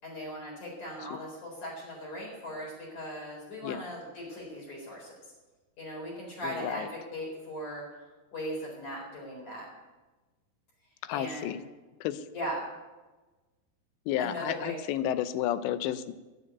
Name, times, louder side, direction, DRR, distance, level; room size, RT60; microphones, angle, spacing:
voice 1, 0.0-5.2 5.8-7.8 8.3-9.7 11.1-11.5 12.3-12.7 14.2-14.8, equal, 45° left, -3 dB, 5.4 m, -38 dB
voice 2, 6.4-6.9 11.0-11.6 12.0-12.3 14.1-16.2, left 11 dB, 90° left, 13 dB, 2.9 m, -31 dB
11.0 x 9.7 x 9.4 m, 1.2 s
omnidirectional pair, 5.0 m